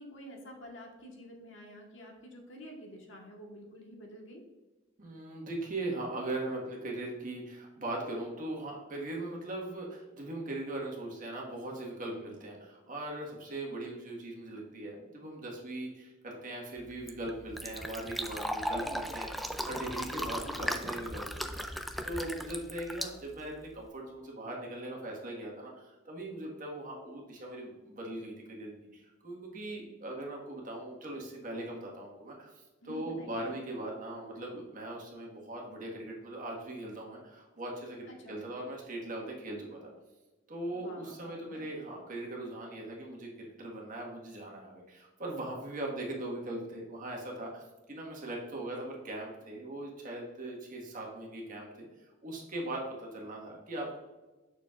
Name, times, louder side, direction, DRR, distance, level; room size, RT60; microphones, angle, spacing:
voice 1, 0.0-4.4 18.6-19.0 22.2-22.6 32.8-33.4 38.1-38.4 40.7-41.6, equal, 80° left, 0 dB, 1.5 m, -48 dB
voice 2, 5.0-39.9 40.5-54.0, right 1 dB, 45° right, -1 dB, 1.6 m, -40 dB
Fill (with liquid), 16.8-23.9, equal, ahead, 0.4 m, -37 dB
6.9 x 6.4 x 2.5 m, 1.1 s
head